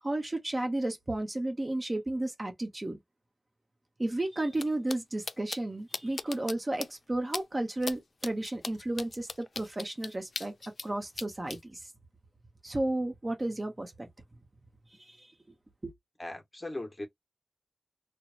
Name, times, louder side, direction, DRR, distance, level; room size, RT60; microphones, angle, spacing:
voice 1, 0.0-3.0 4.0-10.5 10.8-11.9 12.6-14.1 15.0-15.3 15.8-15.9, right 1 dB, 35° right, 0.8 m, -33 dB
sound 1, 4.5-4.6 4.9-5.0 5.3-5.6 5.9-6.5 6.8-6.9 7.3-7.4 7.8-7.9 8.2-10.9 11.2-11.6, left 4 dB, 70° left, 0.3 m, -37 dB
voice 2, 16.2-17.1, left 1 dB, 25° left, 0.9 m, -38 dB
3.0 x 2.1 x 2.4 m
wide cardioid pair, 70°, 0 cm